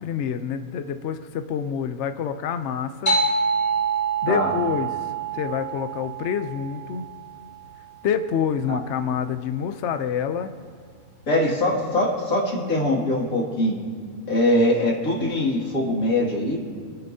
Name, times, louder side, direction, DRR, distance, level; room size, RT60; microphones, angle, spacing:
voice 1, 0.0-3.2 4.2-7.0 8.0-10.5, left 7 dB, 65° left, 8 dB, 0.8 m, -27 dB
sound 1, 3.1-8.0, right 4 dB, 10° left, 3.5 m, -27 dB
voice 2, 11.3-13.8 14.3-16.6, left 1 dB, 85° left, -3 dB, 2.9 m, -22 dB
26.5 x 10.0 x 2.7 m, 2.1 s
omnidirectional pair, 1.4 m